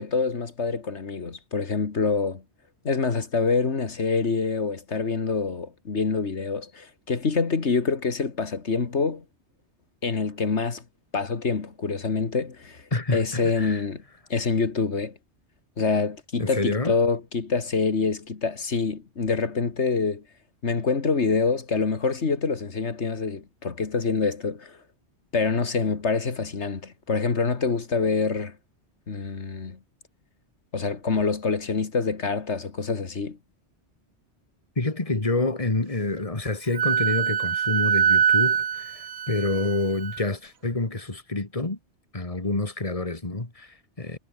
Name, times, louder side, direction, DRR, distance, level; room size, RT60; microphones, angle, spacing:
voice 1, 0.0-2.4 2.8-9.2 10.0-10.8 11.1-14.0 14.3-15.1 15.8-20.2 20.6-24.8 25.3-28.6 29.1-29.8 30.7-33.4, left 4 dB, 80° left, 2.3 m, -26 dB
voice 2, 12.9-13.8 16.4-16.9 34.8-41.8 42.1-44.2, left 2 dB, 30° left, 2.5 m, -28 dB
Wind instrument woodwind instrument, 36.7-40.2, right 7 dB, 70° right, 1.3 m, -23 dB
omnidirectional pair, 1.1 m